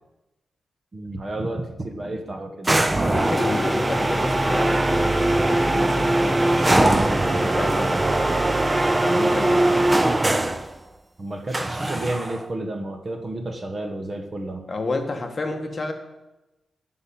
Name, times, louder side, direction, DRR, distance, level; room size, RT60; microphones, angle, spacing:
voice 1, 0.9-3.4 9.7-9.8 11.2-14.7, right 2 dB, 30° right, 6 dB, 1.1 m, -31 dB
sound 1, 2.6-10.7 11.5-12.4, right 1 dB, 15° right, 0.5 m, -21 dB
voice 2, 3.0-8.4 9.0-9.7 14.7-15.9, left 2 dB, 30° left, 4 dB, 1.4 m, -30 dB
10.0 x 5.7 x 8.6 m, 1.0 s
wide cardioid pair, 155°, 0 cm